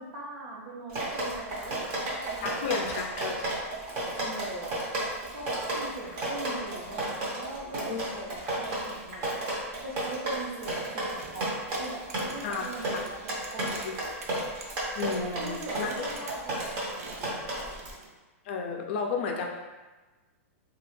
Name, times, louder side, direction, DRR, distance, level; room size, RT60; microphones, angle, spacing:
voice 1, 0.0-3.4 4.2-4.8 5.3-9.4 9.8-14.0 15.2-17.6, right 2 dB, 65° right, -3 dB, 0.9 m, -41 dB
Drip, 0.9-17.9, right 1 dB, 30° right, 0.7 m, -33 dB
voice 2, 2.4-3.5 7.9-8.0 12.4-13.0 13.8-13.9 14.9-16.1 18.5-19.5, left 5 dB, 45° left, 2 dB, 0.4 m, -32 dB
sound 1, 11.2-18.2, right 3 dB, 85° right, 0.5 m, -48 dB
3.1 x 2.3 x 3.1 m, 1.2 s
supercardioid pair, 165°, 8 cm